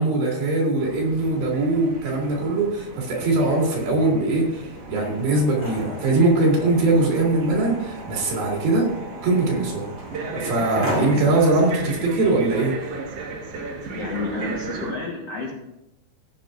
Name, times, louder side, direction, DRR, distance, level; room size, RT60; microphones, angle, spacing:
voice 1, 0.0-8.9 9.2-9.9 10.3-12.7, right 2 dB, 60° right, -2 dB, 3.9 m, -21 dB
sound 1, 0.8-14.9, right 3 dB, 80° right, 1.3 m, -36 dB
sound 2, 4.7-11.5, equal, 10° left, 3.4 m, -36 dB
voice 2, 13.9-15.5, left 2 dB, 75° left, -2 dB, 1.4 m, -30 dB
18.0 x 8.8 x 2.5 m, 0.88 s
omnidirectional pair, 5.3 m